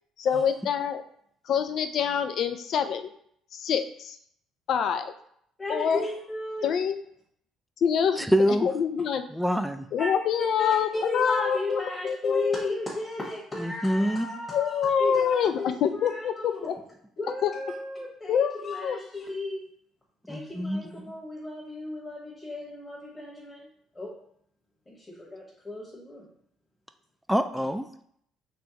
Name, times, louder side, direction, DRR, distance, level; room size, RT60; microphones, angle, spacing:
voice 1, 0.2-1.0 1.5-3.1 3.5-4.2 4.7-5.1 5.7-6.0 6.6-6.9 7.8-8.3 8.6-9.2 9.9-12.7 14.5-16.7 17.4-17.5 18.3-19.0, left 7 dB, 60° left, 9 dB, 0.4 m, -26 dB
voice 2, 5.6-6.7 10.0-10.1 10.4-16.7 17.2-19.6 20.3-23.7 23.9-24.1 24.9-26.3, left 2 dB, 20° left, -6 dB, 1.4 m, -35 dB
voice 3, 8.2-8.7 9.3-9.9 13.6-14.3 20.3-20.8 27.3-27.9, equal, ahead, 8 dB, 0.4 m, -25 dB
4.4 x 3.2 x 2.9 m, 0.67 s
supercardioid pair, 75°, 0 cm